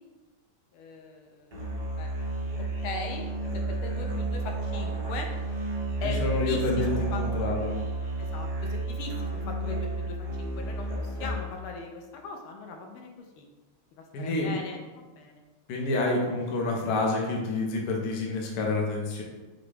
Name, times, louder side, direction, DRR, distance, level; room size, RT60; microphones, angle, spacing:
voice 1, 0.7-1.6 2.0-2.1 2.8-3.3 3.5-5.3 6.0-6.2 6.4-7.5 8.3-13.4 14.0-15.4, left 4 dB, 80° left, 2 dB, 1.4 m, -39 dB
Musical instrument, 1.5-11.6, right 2 dB, 35° right, 0.6 m, -31 dB
voice 2, 6.0-7.7 14.1-14.5 15.7-19.2, left 2 dB, 60° left, -1 dB, 1.1 m, -28 dB
6.0 x 2.2 x 3.2 m, 1.2 s
omnidirectional pair, 2.4 m